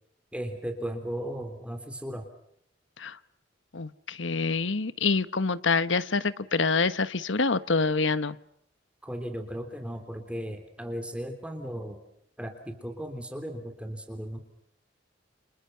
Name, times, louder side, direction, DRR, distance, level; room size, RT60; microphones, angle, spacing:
voice 1, 0.3-2.3 9.0-12.0 12.4-14.4, equal, 5° right, 5 dB, 3.4 m, -36 dB
voice 2, 3.7-8.4, left 4 dB, 80° left, 14 dB, 1.1 m, -26 dB
29.5 x 29.5 x 5.7 m, 0.70 s
head